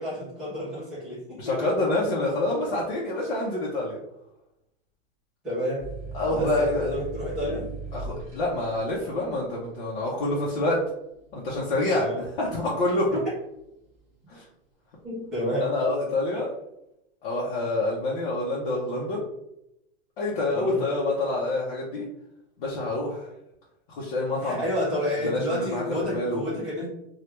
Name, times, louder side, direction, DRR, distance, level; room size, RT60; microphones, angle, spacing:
voice 1, 0.0-1.4 5.4-5.9 6.3-7.7 11.9-12.2 15.0-15.7 20.5-20.8 24.4-26.9, left 1 dB, ahead, -12 dB, 0.3 m, -30 dB
voice 2, 1.4-4.0 6.1-6.9 7.9-10.8 11.3-13.1 14.3-14.4 15.6-16.5 17.2-19.2 20.2-22.1 22.6-23.3 23.9-24.6 25.2-25.8 26.1-26.4, left 2 dB, 55° left, -5 dB, 0.7 m, -27 dB
sound 1, 5.8-13.1 13.5-14.2, right 4 dB, 20° right, 1.5 m, -40 dB
3.2 x 2.3 x 3.0 m, 0.83 s
supercardioid pair, 180°, 32 cm